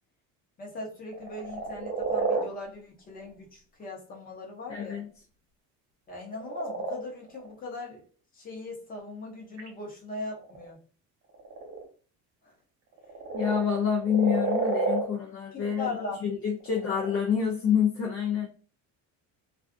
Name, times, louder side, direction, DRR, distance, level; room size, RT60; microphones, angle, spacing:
voice 1, 0.6-5.0 6.1-8.0 8.3-10.8 12.4-12.5 15.5-16.4 16.7-16.8, left 2 dB, 25° left, -1 dB, 0.9 m, -39 dB
sound 1, 1.1-2.5 3.1-3.3 6.3-7.5 9.6-9.7 10.3-10.7 11.3-11.8 12.9-13.6 14.0-15.0 16.6-17.1, right 3 dB, 50° right, 1.0 m, -30 dB
voice 2, 4.7-5.1 13.3-15.9 16.2-18.5, left 7 dB, 40° left, 0 dB, 0.6 m, -27 dB
2.5 x 2.3 x 2.4 m, 0.40 s
cardioid pair, 150°, 35 cm